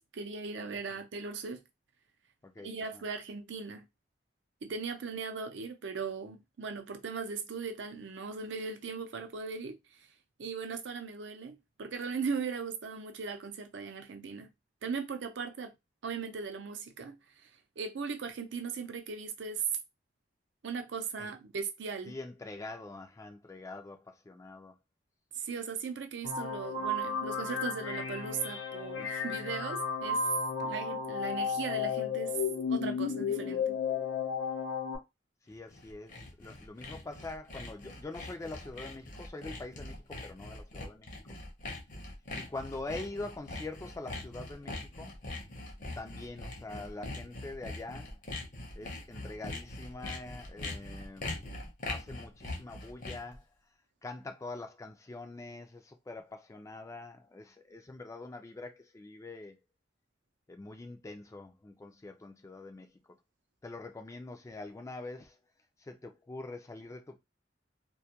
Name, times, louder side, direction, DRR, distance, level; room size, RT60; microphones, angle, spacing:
voice 1, 0.0-1.6 2.6-3.8 4.6-9.8 10.4-14.5 14.8-15.7 16.0-17.2 17.4-17.5 17.8-19.6 20.6-22.1 25.3-30.3 30.6-32.4 32.7-33.8, right 5 dB, 75° right, 0.5 m, -38 dB
voice 2, 2.4-3.0 21.2-21.3 22.1-24.8 35.5-41.1 42.3-45.1 46.0-48.2 48.7-51.4 51.9-53.5 54.0-59.6 60.5-63.0 63.6-65.4 65.8-67.2, left 2 dB, 15° left, 0.3 m, -44 dB
sound 1, 26.2-35.0, left 5 dB, 90° left, 0.6 m, -33 dB
Sawing, 35.5-53.4, left 2 dB, 45° left, 0.7 m, -42 dB
2.2 x 2.1 x 2.7 m
head